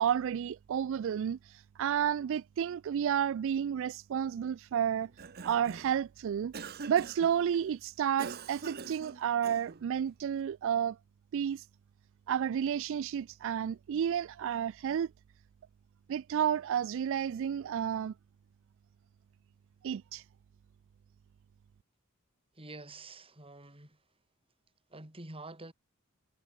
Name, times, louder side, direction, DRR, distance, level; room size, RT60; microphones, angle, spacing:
voice 1, 0.0-5.1 5.4-6.5 6.9-11.0 11.3-11.7 12.3-15.1 16.1-18.1 19.8-20.2, right 8 dB, 65° right, 0.3 m, -31 dB
Cough, 5.0-6.0 6.5-7.4 8.2-9.9, right 5 dB, 50° right, 0.8 m, -44 dB
voice 2, 22.5-24.0 24.9-25.7, right 2 dB, 25° right, 3.4 m, -47 dB
head